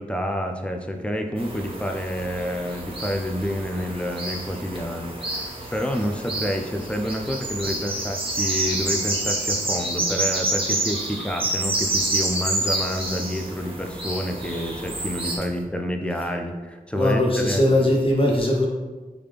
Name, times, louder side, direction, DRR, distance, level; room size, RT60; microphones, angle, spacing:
voice 1, 0.0-17.7, equal, 5° left, 4 dB, 0.4 m, -28 dB
sound 1, 1.4-15.4, right 2 dB, 35° right, 0.8 m, -28 dB
voice 2, 17.0-18.7, left 1 dB, 35° left, -2 dB, 0.9 m, -20 dB
3.5 x 2.4 x 3.3 m, 1.3 s
cardioid pair, 40°, 15 cm